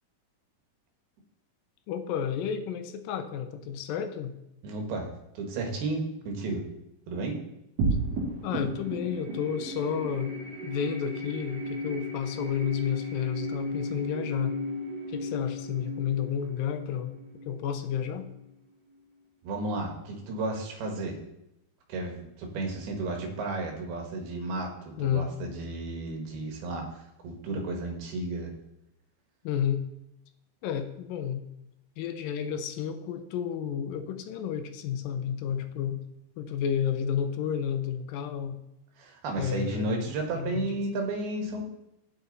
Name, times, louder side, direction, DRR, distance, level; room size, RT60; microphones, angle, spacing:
voice 1, 1.9-4.4 8.4-10.4 10.6-14.6 15.1-17.2 17.5-18.3 25.0-25.3 29.4-29.8 30.6-31.5 32.0-36.0 36.4-38.6 39.3-40.7, left 8 dB, 80° left, 9 dB, 2.3 m, -31 dB
voice 2, 4.6-6.6 7.1-7.4 19.4-21.2 21.9-28.5 39.0-41.6, right 2 dB, 85° right, 2 dB, 3.4 m, -33 dB
sound 1, 7.8-18.4, right 1 dB, 50° right, 3.0 m, -34 dB
9.7 x 7.7 x 4.0 m, 0.85 s
omnidirectional pair, 4.3 m